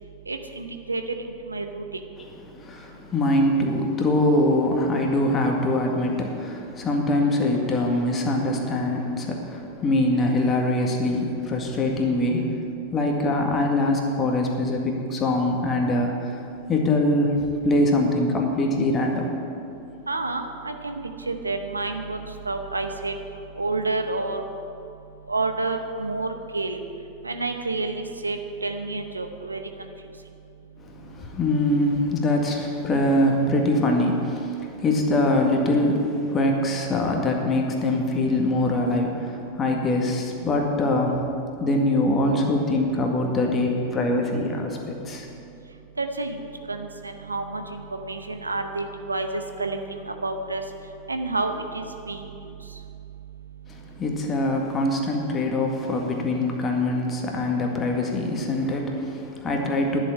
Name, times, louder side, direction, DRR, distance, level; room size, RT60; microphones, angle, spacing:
voice 1, 0.3-1.0 1.5-1.8 20.1-21.0 21.3-23.1 23.6-24.4 25.3-26.3 26.5-26.8 27.2-29.6 46.0-46.4 46.7-50.6 51.1-52.3, right 3 dB, 80° right, 6 dB, 0.9 m, -29 dB
voice 2, 2.5-12.6 12.9-16.4 16.7-19.4 30.8-41.2 41.6-45.3 53.7-60.0, left 1 dB, 25° left, 1 dB, 1.9 m, -23 dB
11.0 x 6.8 x 9.5 m, 2.7 s
figure-of-eight pair, 90°, 0 cm